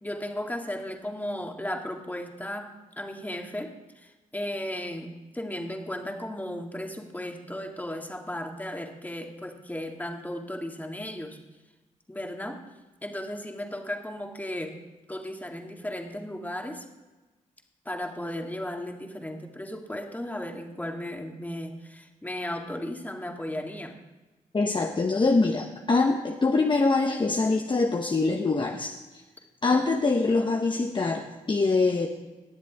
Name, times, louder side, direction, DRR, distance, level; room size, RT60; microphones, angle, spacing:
voice 1, 0.0-2.7 3.0-11.4 12.1-12.6 13.0-14.8 15.1-16.8 17.9-24.0, left 1 dB, 10° left, 2 dB, 2.1 m, -35 dB
voice 2, 24.5-28.9 29.6-32.1, left 3 dB, 35° left, 2 dB, 1.0 m, -24 dB
20.5 x 7.4 x 3.6 m, 1.1 s
supercardioid pair, 50°, 14 cm